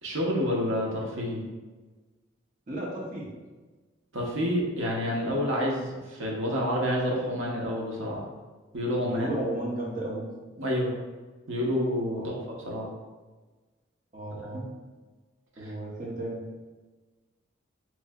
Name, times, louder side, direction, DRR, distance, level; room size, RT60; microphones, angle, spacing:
voice 1, 0.0-1.4 4.1-8.2 8.7-9.3 10.6-10.9 11.5-12.3 12.7-12.9 14.5-14.6 15.6-15.7, equal, 85° right, -2 dB, 0.7 m, -28 dB
voice 2, 2.7-3.3 9.1-10.3 12.1-12.4 14.1-14.6 15.6-16.4, right 1 dB, 40° right, -5 dB, 0.6 m, -34 dB
4.4 x 2.6 x 2.2 m, 1.3 s
head